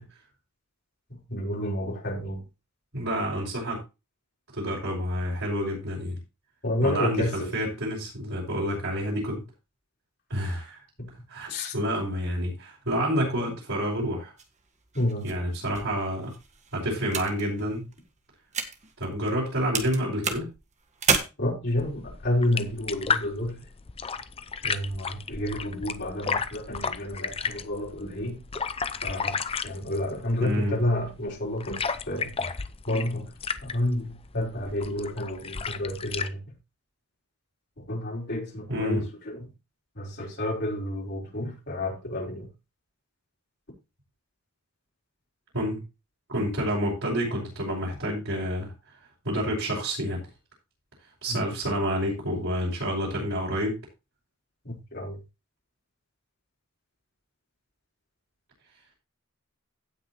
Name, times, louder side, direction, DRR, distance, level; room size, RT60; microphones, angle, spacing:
voice 1, 1.3-2.4 6.6-7.5 11.0-11.1 11.5-11.7 14.9-15.3 21.4-23.6 24.6-28.4 29.0-29.4 29.6-32.3 32.9-33.3 33.6-36.4 37.8-39.5 40.0-42.5 51.3-51.4 54.6-55.2, left 1 dB, 50° left, 5.4 m, -30 dB
voice 2, 2.9-3.8 4.5-6.2 6.8-9.4 10.3-10.8 11.3-14.3 15.2-16.3 16.7-17.9 19.0-20.5 30.4-30.8 38.7-39.0 45.5-45.8 46.3-48.7 49.2-50.2 51.2-53.8, equal, 60° right, 5.9 m, -28 dB
sound 1, 14.4-19.5 19.7-21.2, right 5 dB, 35° right, 1.7 m, -32 dB
sound 2, 21.7-36.3, left 5 dB, 25° left, 0.6 m, -34 dB
17.0 x 6.3 x 3.0 m
head